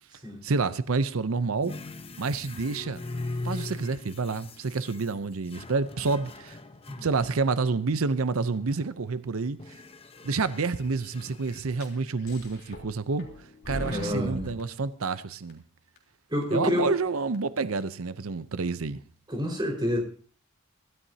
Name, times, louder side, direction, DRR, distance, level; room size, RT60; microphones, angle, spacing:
voice 1, 0.4-1.7 2.2-3.0 3.4-6.6 7.0-9.6 10.2-13.3 13.7-15.6 16.5-19.0, right 4 dB, 75° right, 0.7 m, -28 dB
sound 1, 1.6-8.0 8.5-9.2 9.6-11.6, left 2 dB, 30° left, 0.9 m, -41 dB
sound 2, 11.8-11.9 12.3-12.9 13.2-14.6 15.0-15.1 15.5-15.6 16.0-16.1 16.4-16.5 16.9-17.0 17.3-17.4 17.8-17.9, left 1 dB, 50° left, 3.5 m, -38 dB
voice 2, 13.9-14.5 16.3-16.9 19.3-20.0, left 1 dB, 20° right, 4.7 m, -28 dB
23.5 x 13.0 x 2.8 m
head